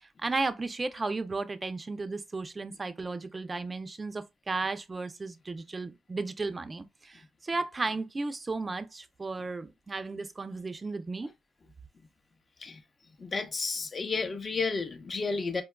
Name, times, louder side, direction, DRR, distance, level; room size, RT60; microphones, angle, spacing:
voice 1, 0.2-11.3, right 3 dB, 25° right, 0.4 m, -34 dB
voice 2, 13.2-15.6, left 4 dB, 30° left, 0.6 m, -32 dB
4.4 x 2.3 x 2.2 m
cardioid pair, 90°, 0 cm